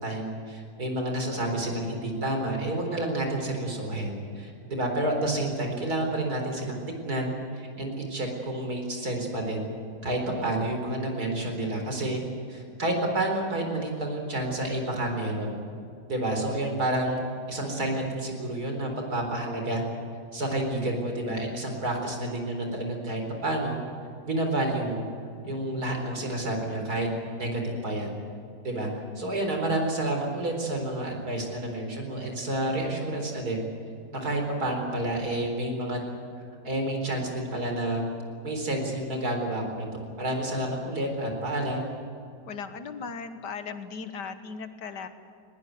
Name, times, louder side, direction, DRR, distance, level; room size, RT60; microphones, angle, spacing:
voice 1, 0.0-6.8 7.0-9.7 10.0-12.2 12.5-15.5 16.1-17.2 17.5-19.8 20.3-23.8 24.3-25.0 25.4-27.1 27.4-28.1 28.6-33.6 34.1-36.0 36.6-38.0 38.4-41.8, right 1 dB, 60° right, 3 dB, 4.7 m, -29 dB
voice 2, 42.5-45.1, left 5 dB, 75° left, 9 dB, 2.0 m, -37 dB
20.0 x 19.5 x 9.4 m, 2.5 s
omnidirectional pair, 1.8 m